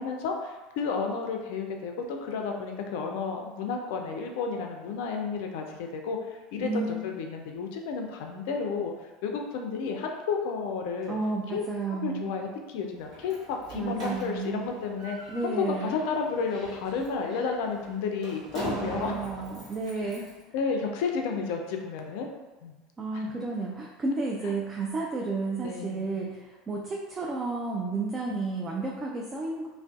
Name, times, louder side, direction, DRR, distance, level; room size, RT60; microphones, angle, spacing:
voice 1, 0.0-8.9 9.2-11.2 11.5-11.6 12.0-19.2 20.5-22.3 22.6-22.7 23.1-23.2 24.4-24.5 25.6-26.1 28.3-28.4, left 5 dB, 65° left, 3 dB, 0.4 m, -32 dB
voice 2, 6.6-7.1 11.1-12.4 13.7-14.7 15.3-15.9 18.6-20.3 23.0-29.7, right 3 dB, 25° right, -2 dB, 0.3 m, -32 dB
Slam, 13.0-20.4, right 1 dB, 45° right, 1.0 m, -43 dB
2.5 x 2.1 x 2.3 m, 1.2 s
hypercardioid pair, 80°, 0 cm